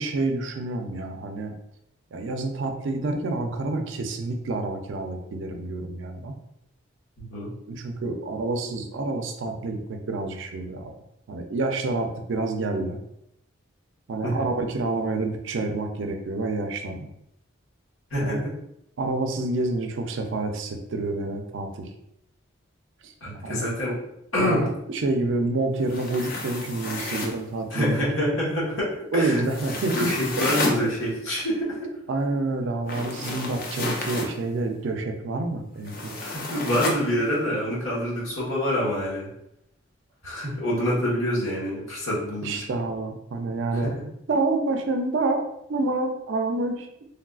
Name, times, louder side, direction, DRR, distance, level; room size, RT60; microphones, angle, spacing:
voice 1, 0.0-1.5 2.1-6.3 7.7-10.9 11.3-13.0 14.1-17.1 18.2-18.4 19.0-21.9 23.0-23.1 23.4-23.7 24.4-28.0 29.1-30.7 32.1-36.1 42.4-43.9 44.3-46.9, right 2 dB, 65° right, 5 dB, 0.4 m, -28 dB
voice 2, 7.2-7.5 14.2-14.3 18.1-18.4 23.2-24.0 24.3-24.7 27.7-29.5 29.9-31.9 36.2-39.3 40.2-42.8 43.7-44.0, equal, 85° left, -6 dB, 1.2 m, -26 dB
sound 1, 25.8-27.4 29.4-30.8 32.8-34.3 35.9-37.0, left 2 dB, 45° left, 0.4 m, -31 dB
3.4 x 2.3 x 2.3 m, 0.80 s
head